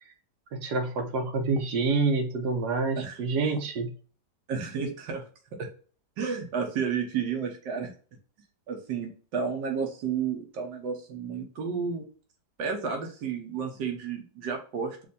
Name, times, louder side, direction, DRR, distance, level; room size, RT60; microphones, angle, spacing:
voice 1, 0.5-3.9, right 3 dB, 75° right, 4 dB, 1.2 m, -27 dB
voice 2, 2.9-3.6 4.5-5.3 6.2-7.9 8.7-12.0 12.6-15.0, right 6 dB, 90° right, 3 dB, 1.5 m, -32 dB
6.4 x 2.6 x 2.6 m, 0.40 s
omnidirectional pair, 1.9 m